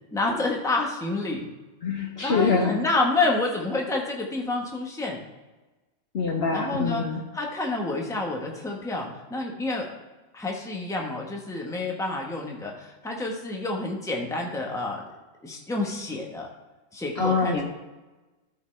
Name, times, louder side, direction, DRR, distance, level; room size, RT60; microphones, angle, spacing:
voice 1, 0.1-1.5 2.2-5.2 6.5-7.0 7.3-9.9 10.3-15.0 15.4-16.5 16.9-17.6, left 2 dB, 5° left, 0 dB, 1.0 m, -28 dB
voice 2, 1.8-2.8 6.1-7.2 17.2-17.6, left 4 dB, 50° left, 2 dB, 1.0 m, -24 dB
12.0 x 4.6 x 3.3 m, 1.1 s
omnidirectional pair, 1.4 m